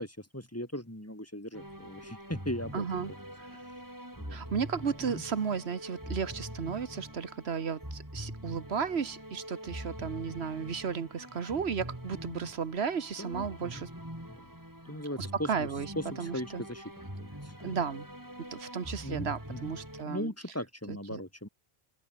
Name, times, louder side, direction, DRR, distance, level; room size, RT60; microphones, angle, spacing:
voice 1, 0.0-2.8 4.2-4.4 5.0-5.2 13.2-13.9 14.3-14.5 14.8-15.7 16.0-17.6 19.0-19.7 20.0-21.5, equal, 15° left, 3.7 m, -39 dB
sound 1, 1.5-20.0, equal, 20° right, 8.1 m, -44 dB
voice 2, 2.7-3.1 3.4-3.6 4.3-13.9 15.2-15.9 16.2-16.6 17.6-18.0 18.5-20.3 20.9-21.2, right 6 dB, 90° right, 1.6 m, -34 dB
omnidirectional pair, 1.1 m